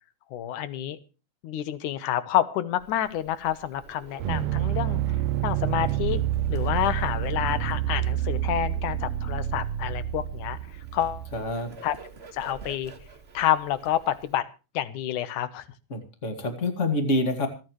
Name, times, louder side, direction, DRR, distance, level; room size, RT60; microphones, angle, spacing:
voice 1, 0.3-1.0 1.4-5.0 5.4-6.2 6.5-10.6 10.9-11.2 11.8-12.0 12.3-12.9 13.3-14.4 14.7-15.7, left 11 dB, 80° left, 14 dB, 2.5 m, -28 dB
Bird, 2.8-14.4, right 4 dB, 30° right, 1.4 m, -49 dB
sound 1, 4.2-11.4, right 11 dB, 75° right, 1.4 m, -28 dB
voice 2, 11.3-11.7 15.9-17.5, left 2 dB, 25° left, 6 dB, 2.3 m, -27 dB
26.5 x 9.5 x 3.1 m, 0.33 s
omnidirectional pair, 3.5 m